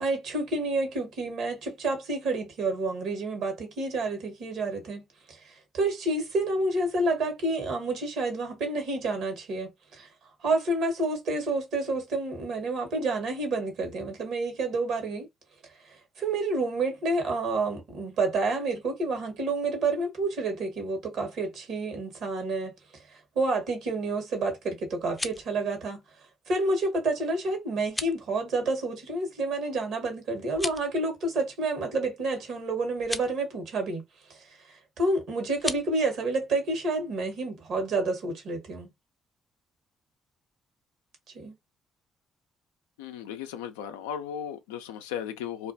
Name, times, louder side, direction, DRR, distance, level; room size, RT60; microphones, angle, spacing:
voice 1, 0.0-10.1 10.4-15.3 15.8-22.7 23.1-26.0 26.5-34.0 34.3-38.9 41.3-41.5, right 2 dB, 70° right, 1.1 m, -29 dB
sound 1, 24.9-25.5 27.8-28.2 30.5-30.9 33.0-33.3 35.5-35.9, left 2 dB, 15° left, 0.4 m, -35 dB
voice 2, 43.0-45.7, left 9 dB, 90° left, 0.3 m, -36 dB
2.4 x 2.2 x 2.6 m
hypercardioid pair, 50°, 0 cm